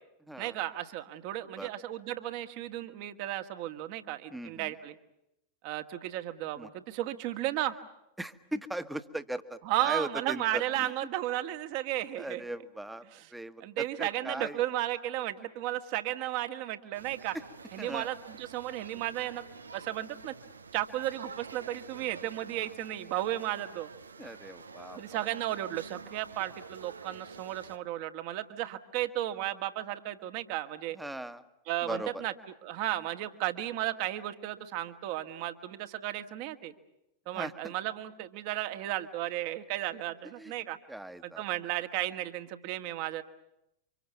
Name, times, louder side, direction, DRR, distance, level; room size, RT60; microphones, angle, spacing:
voice 1, 0.4-4.9 5.6-7.8 9.6-12.4 13.1-13.3 13.6-17.4 17.7-19.5 19.7-20.3 20.7-23.9 24.9-31.0 31.7-32.3 32.6-36.7 37.3-40.8 41.2-43.2, right 14 dB, 45° right, 9 dB, 1.9 m, -34 dB
voice 2, 4.3-4.7 6.6-6.7 8.2-10.9 12.2-13.0 13.3-14.6 17.8-18.1 24.2-25.3 31.0-31.4 31.8-32.1 37.3-37.7 40.4-40.5 40.9-41.4, right 1 dB, 5° right, 11 dB, 1.4 m, -39 dB
sound 1, 16.9-27.8, right 5 dB, 75° right, 1.0 m, -48 dB
29.5 x 25.5 x 7.1 m, 0.83 s
figure-of-eight pair, 90°, 0 cm